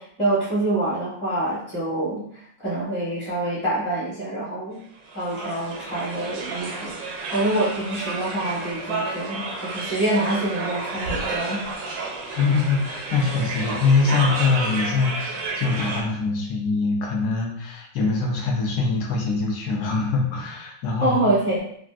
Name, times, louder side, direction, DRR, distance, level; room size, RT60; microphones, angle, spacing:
voice 1, 0.0-4.8 5.1-7.0 7.3-11.6 21.0-21.6, right 1 dB, 5° left, -10 dB, 0.6 m, -26 dB
sound 1, 5.1-16.0, right 3 dB, 85° right, 1.3 m, -31 dB
voice 2, 12.3-21.2, left 4 dB, 70° left, 0 dB, 1.2 m, -23 dB
3.5 x 2.4 x 2.3 m, 0.64 s
omnidirectional pair, 1.9 m